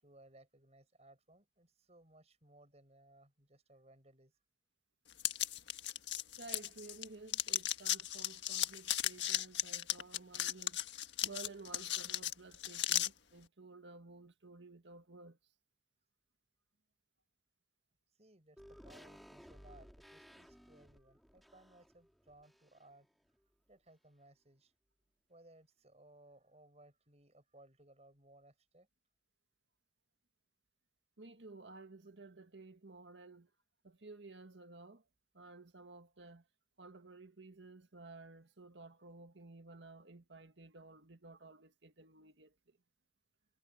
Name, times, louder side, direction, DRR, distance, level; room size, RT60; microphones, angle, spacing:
voice 1, 0.0-4.3 18.2-23.1 23.7-24.7 25.3-28.9, right 1 dB, 35° right, 7.5 m, -63 dB
sound 1, 5.2-7.0 7.3-13.1, left 12 dB, 85° left, 1.5 m, -36 dB
voice 2, 6.4-10.8 11.2-15.4 31.2-33.5 33.8-35.0 35.3-36.5 36.8-42.8, right 3 dB, 85° right, 1.8 m, -54 dB
sound 2, 18.6-23.1 23.3-23.4, equal, ahead, 4.3 m, -58 dB
head